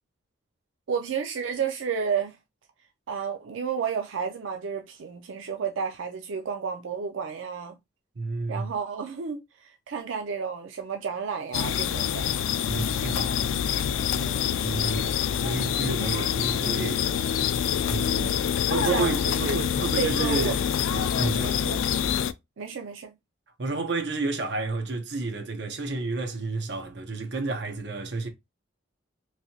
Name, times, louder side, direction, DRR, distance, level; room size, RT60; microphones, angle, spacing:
voice 1, 0.9-2.4 3.1-7.8 8.5-12.4 14.1-14.4 18.2-19.6 20.0-20.6 21.2-21.8 22.6-23.1, right 6 dB, 90° right, 0.4 m, -32 dB
voice 2, 8.2-8.7 12.7-13.5 14.6-17.4 17.9-18.3 18.7-20.6 20.9-21.6 23.6-28.3, right 3 dB, 60° right, 0.8 m, -31 dB
sound 1, 11.5-22.3, left 8 dB, 90° left, 0.3 m, -26 dB
3.1 x 2.7 x 2.8 m
head